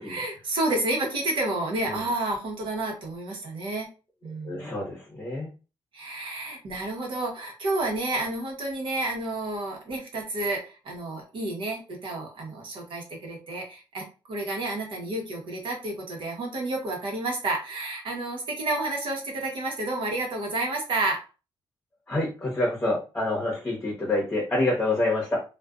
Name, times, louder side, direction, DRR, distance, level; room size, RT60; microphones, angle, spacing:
voice 1, 0.0-3.9 4.2-4.7 5.9-21.2, right 2 dB, 70° right, 0 dB, 0.9 m, -30 dB
voice 2, 4.4-5.5 22.1-25.4, left 2 dB, 20° left, -4 dB, 0.9 m, -27 dB
2.4 x 2.2 x 2.3 m, 0.32 s
wide cardioid pair, 135°, 9 cm